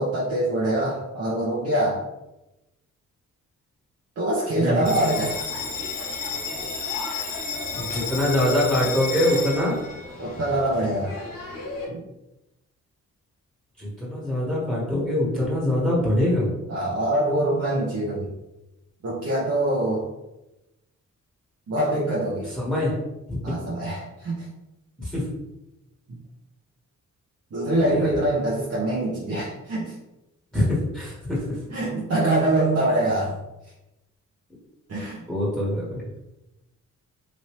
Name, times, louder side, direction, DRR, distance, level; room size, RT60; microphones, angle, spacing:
voice 1, 0.0-2.1 4.2-5.4 10.2-11.2 11.9-12.0 16.7-18.3 19.0-20.1 21.7-22.5 23.4-24.4 26.1-26.2 27.5-29.9 31.7-33.4 34.9-35.2, right 1 dB, 50° right, -7 dB, 0.9 m, -24 dB
Bell, 4.8-11.8, left 4 dB, 80° left, 0.9 m, -32 dB
voice 2, 7.7-9.8 13.8-16.5 22.5-22.9 23.3-23.4 25.0-25.2 27.7-28.1 30.5-31.4 35.3-36.0, left 1 dB, ahead, -6 dB, 1.4 m, -24 dB
3.0 x 2.7 x 3.1 m, 0.94 s
cardioid pair, 70°, 32 cm